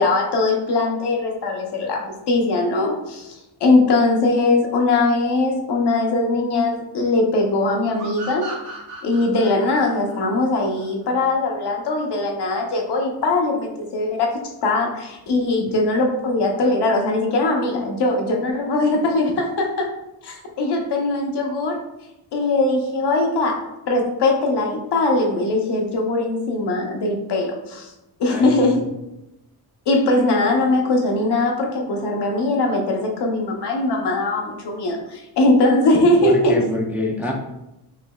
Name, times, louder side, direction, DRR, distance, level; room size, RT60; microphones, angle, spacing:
voice 1, 0.0-8.5 9.0-14.3 14.6-19.9 20.2-21.8 22.3-27.9 28.2-28.8 29.9-36.6, left 2 dB, 75° left, 1 dB, 0.9 m, -20 dB
sound 1, 8.0-11.3, right 2 dB, 60° right, 1.5 m, -37 dB
voice 2, 28.3-28.9 36.2-37.3, left 1 dB, 5° right, 0 dB, 0.3 m, -26 dB
5.0 x 3.2 x 2.3 m, 0.91 s
wide cardioid pair, 150°, 40 cm